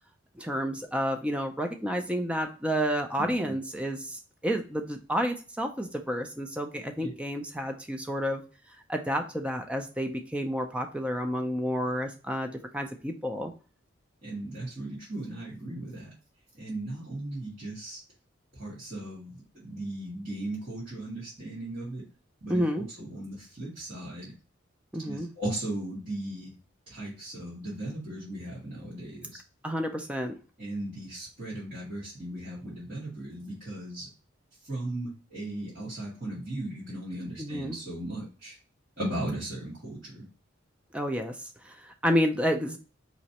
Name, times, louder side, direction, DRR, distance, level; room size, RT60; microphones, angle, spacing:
voice 1, 0.4-8.4 8.9-13.5 22.5-22.8 24.9-25.3 29.6-30.4 37.4-37.8 40.9-41.4 41.6-42.8, equal, 5° right, 4 dB, 0.4 m, -30 dB
voice 2, 3.2-3.5 7.0-7.1 14.2-16.1 16.6-18.0 18.5-22.0 22.4-24.3 25.0-26.5 26.9-29.4 30.6-34.1 34.6-38.6 39.0-40.2, right 1 dB, 45° right, -10 dB, 2.1 m, -37 dB
5.0 x 3.1 x 2.8 m, 0.35 s
head